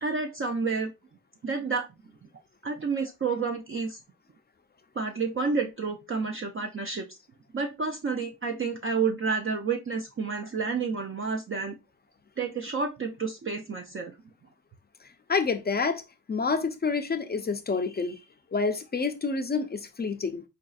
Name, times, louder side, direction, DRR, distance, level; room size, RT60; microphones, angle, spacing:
voice 1, 0.0-0.9 1.4-1.9 2.6-4.0 5.0-7.2 7.5-11.8 12.4-14.1, right 4 dB, 35° right, 0.5 m, -30 dB
voice 2, 15.3-16.0 16.3-18.2 18.5-20.4, left 4 dB, 30° left, 0.5 m, -28 dB
4.0 x 2.6 x 2.3 m
cardioid pair, 75°, 36 cm